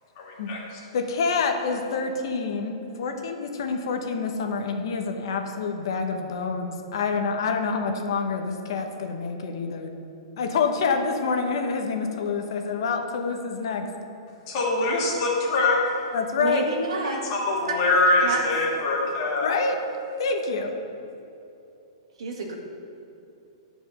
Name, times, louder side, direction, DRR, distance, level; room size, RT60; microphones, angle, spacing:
voice 1, 0.2-0.6 14.5-15.8 17.3-19.5, left 2 dB, 35° left, -4 dB, 2.2 m, -23 dB
voice 2, 0.9-9.9 10.4-13.9 16.1-16.7 19.4-19.8 20.2-20.7, left 4 dB, 55° left, 4 dB, 1.0 m, -27 dB
voice 3, 16.4-17.2 18.2-18.5 22.2-22.6, right 2 dB, 90° right, 1 dB, 1.7 m, -29 dB
9.6 x 5.0 x 6.3 m, 2.8 s
hypercardioid pair, 170°, 3 cm